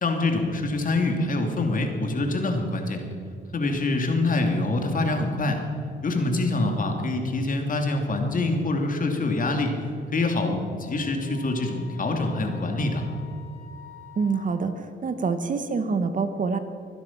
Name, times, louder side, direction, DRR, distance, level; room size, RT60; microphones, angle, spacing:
voice 1, 0.0-3.0 3.5-5.6 6.0-9.8 10.1-13.1, left 2 dB, 45° left, 3 dB, 2.8 m, -25 dB
Wind instrument woodwind instrument, 10.7-14.6, left 9 dB, 80° left, 3.7 m, -48 dB
voice 2, 14.2-16.6, right 4 dB, 40° right, 10 dB, 1.3 m, -26 dB
23.5 x 10.5 x 6.0 m, 2.4 s
cardioid pair, 90°, 20 cm